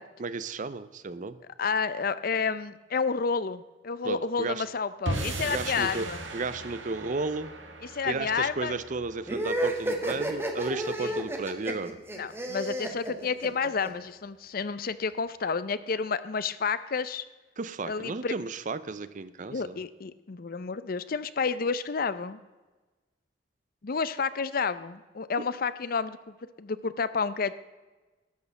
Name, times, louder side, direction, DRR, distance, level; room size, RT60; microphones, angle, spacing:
voice 1, 0.2-1.4 4.0-4.6 5.5-7.5 8.0-12.0 17.6-19.8, right 3 dB, 45° right, 15 dB, 0.6 m, -34 dB
voice 2, 1.6-6.2 7.9-8.7 11.0-11.2 12.2-17.2 17.9-18.3 19.5-22.4 23.8-27.6, left 5 dB, 50° left, 15 dB, 0.6 m, -30 dB
sound 1, 5.1-11.4, right 2 dB, 90° right, 1.6 m, -38 dB
sound 2, 9.3-13.9, right 1 dB, 15° right, 1.4 m, -31 dB
12.0 x 6.6 x 7.0 m, 1.2 s
head